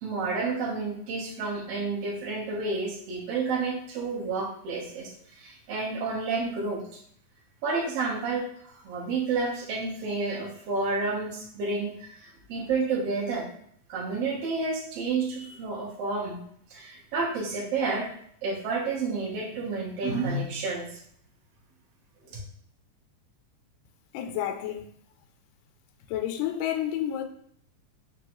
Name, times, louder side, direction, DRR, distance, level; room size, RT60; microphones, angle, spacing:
voice 1, 0.0-6.8 7.6-13.5 13.9-16.4 16.7-18.1 18.4-21.0 22.3-22.4, right 4 dB, 60° right, 2.0 m, -30 dB
voice 2, 24.1-24.9 26.1-27.2, left 11 dB, 85° left, 2.1 m, -30 dB
5.2 x 3.0 x 3.0 m
omnidirectional pair, 3.7 m